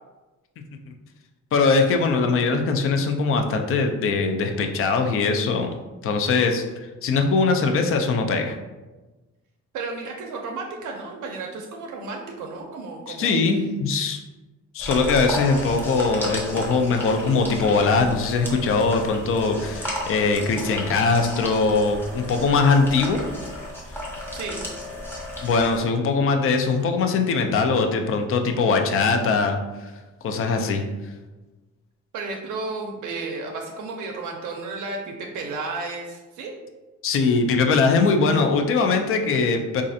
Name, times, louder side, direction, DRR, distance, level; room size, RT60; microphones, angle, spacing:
voice 1, 1.5-5.7 6.0-6.6 7.0-8.6 13.1-14.2 14.7-23.2 25.4-29.9 30.2-31.1 37.0-39.8, left 4 dB, 45° left, 5 dB, 0.4 m, -21 dB
voice 2, 9.7-13.4 24.3-24.6 32.1-36.5, right 3 dB, 80° right, 1 dB, 0.5 m, -33 dB
sound 1, 14.8-25.8, equal, 5° left, 0.6 m, -33 dB
4.0 x 2.4 x 2.6 m, 1.2 s
cardioid pair, 160°, 30 cm